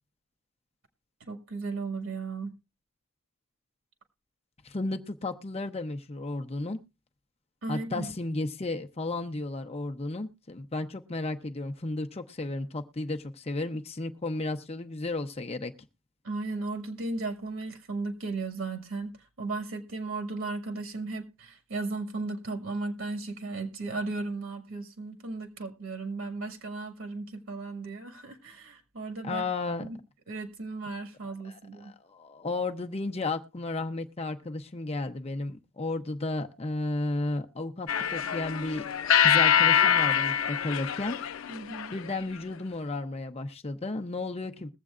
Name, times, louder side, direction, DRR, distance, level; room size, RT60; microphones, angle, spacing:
voice 1, 1.3-2.5 7.6-8.1 16.2-29.4 29.8-30.0 30.3-31.9 41.5-41.9, right 3 dB, 90° right, 7 dB, 1.8 m, -35 dB
voice 2, 4.6-6.8 7.7-15.7 29.2-29.9 31.4-38.9 39.2-41.2 41.9-44.7, left 2 dB, 30° left, 5 dB, 0.7 m, -33 dB
sound 1, 37.9-42.2, left 8 dB, 85° left, 0.5 m, -24 dB
21.0 x 7.5 x 2.4 m, 0.27 s
head